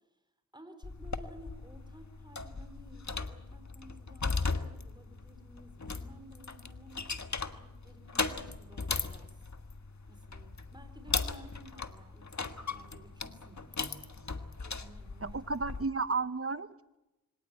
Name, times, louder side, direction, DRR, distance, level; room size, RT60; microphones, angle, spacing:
voice 1, 0.5-9.4 10.1-14.1 14.6-15.7, equal, 15° right, 7 dB, 4.3 m, -55 dB
sound 1, 0.8-15.9, left 4 dB, 55° left, 1.6 m, -38 dB
voice 2, 15.2-17.0, right 4 dB, 40° right, 13 dB, 0.9 m, -33 dB
24.0 x 18.5 x 9.0 m, 0.97 s
cardioid pair, 45°, 34 cm